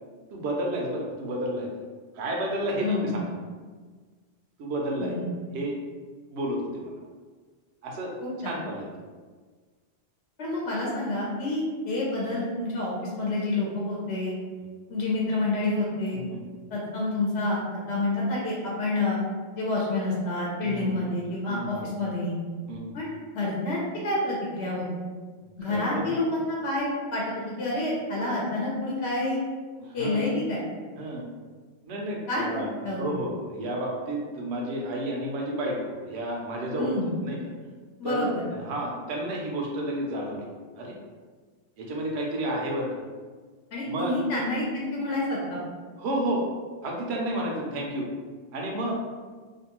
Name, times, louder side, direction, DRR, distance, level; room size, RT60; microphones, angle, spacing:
voice 1, 0.3-1.7 2.1-3.2 4.6-5.2 5.5-5.7 6.3-7.0 7.8-8.1 8.4-8.9 16.1-16.4 20.6-21.0 21.5-21.9 22.7-22.9 25.6-26.2 29.8-30.2 31.0-31.2 31.8-32.7 33.0-36.9 37.2-37.4 38.0-40.5 40.8-41.0 41.8-42.9 43.8-44.1 46.0-46.4 46.8-48.1 48.5-49.0, right 1 dB, 80° right, -1 dB, 0.9 m, -31 dB
voice 2, 2.8-3.1 5.0-5.2 8.2-8.5 10.4-14.3 14.9-16.2 16.7-19.2 19.6-22.4 22.9-24.9 25.6-29.4 29.9-30.6 32.3-32.4 32.8-33.0 36.8-37.1 38.0-38.4 43.7-45.6, left 2 dB, 75° left, -4 dB, 0.9 m, -28 dB
2.6 x 2.2 x 2.9 m, 1.5 s
omnidirectional pair, 1.1 m